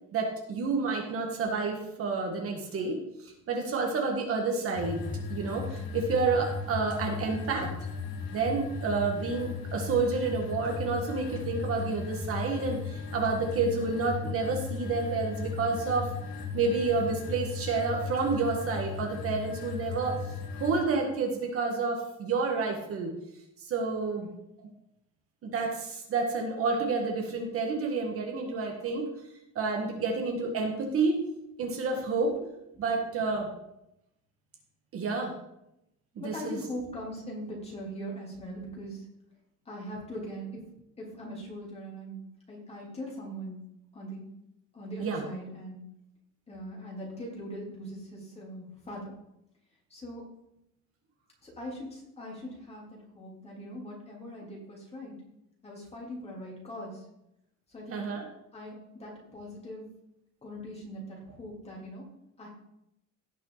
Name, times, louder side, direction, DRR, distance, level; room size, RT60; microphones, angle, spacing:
voice 1, 0.1-5.0 5.3-7.7 8.3-16.1 16.5-20.2 20.6-23.1 23.6-24.3 24.6-24.7 25.4-29.1 29.6-31.2 31.6-32.5 32.8-33.5 34.9-35.3 36.2-36.6 45.0-45.2 57.9-58.2, right 4 dB, 45° right, 1 dB, 1.9 m, -29 dB
sound 1, 4.7-20.8, left 5 dB, 85° left, 2.3 m, -37 dB
voice 2, 36.2-39.1 39.7-40.7 41.0-43.6 43.9-44.3 44.7-45.8 46.5-49.1 49.9-50.2 51.4-55.1 55.6-57.1 57.7-58.1 58.5-59.9 60.4-62.5, equal, 20° left, -3 dB, 3.6 m, -41 dB
17.0 x 6.3 x 4.1 m, 0.83 s
cardioid pair, 165°, 32 cm